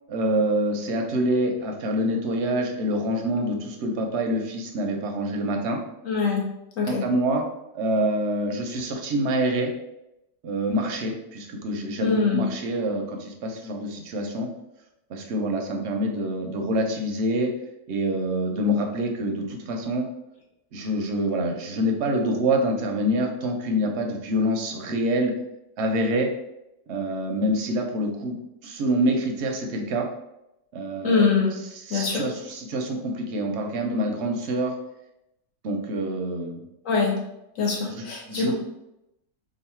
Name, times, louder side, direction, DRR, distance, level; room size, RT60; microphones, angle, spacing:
voice 1, 0.1-5.8 6.9-7.5 7.7-9.7 10.4-14.5 15.1-17.5 17.9-20.1 20.7-25.3 25.8-26.3 26.9-28.4 28.6-30.1 30.7-31.3 31.8-34.7 35.6-36.6 37.9-38.5, right 1 dB, 60° right, 2 dB, 0.8 m, -26 dB
voice 2, 6.0-6.4 6.8-7.0 12.0-12.4 31.0-31.5 31.9-32.3 36.8-37.1 37.6-38.5, left 5 dB, 60° left, -1 dB, 1.2 m, -23 dB
3.0 x 2.5 x 4.3 m, 0.86 s
omnidirectional pair, 1.7 m